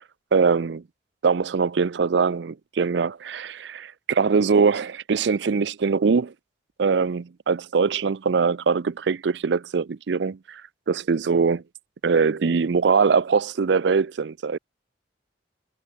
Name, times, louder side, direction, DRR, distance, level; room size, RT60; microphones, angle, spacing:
voice 1, 0.3-0.8 1.2-6.3 6.8-10.6 10.9-11.6 12.0-14.6, right 5 dB, 70° right, 0.5 m, -22 dB
head